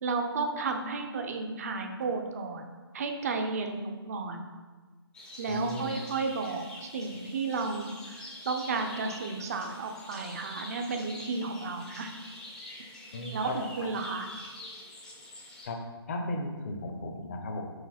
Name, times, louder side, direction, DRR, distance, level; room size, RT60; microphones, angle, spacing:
voice 1, 0.0-2.7 2.9-4.4 5.4-12.1 13.3-14.3, right 4 dB, 35° right, 4 dB, 0.7 m, -33 dB
sound 1, 5.1-15.7, left 1 dB, 5° left, 0.7 m, -46 dB
voice 2, 5.5-5.9 13.1-13.7 15.6-15.8 16.1-17.6, left 2 dB, 35° left, 3 dB, 0.8 m, -35 dB
5.3 x 4.9 x 4.2 m, 1.4 s
figure-of-eight pair, 145°, 14 cm